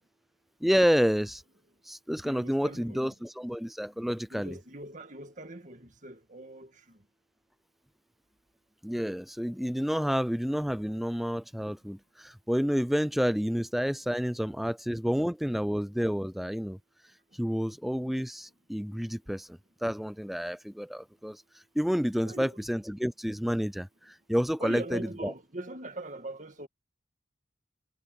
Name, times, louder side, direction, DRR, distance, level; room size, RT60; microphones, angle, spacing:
voice 1, 0.6-1.4 1.9-4.6 8.8-16.8 17.4-21.4 21.8-25.3, equal, ahead, 0.4 m, -29 dB
voice 2, 2.2-3.1 4.3-6.7 22.2-22.6 24.6-26.7, right 1 dB, 40° right, 2.1 m, -41 dB
head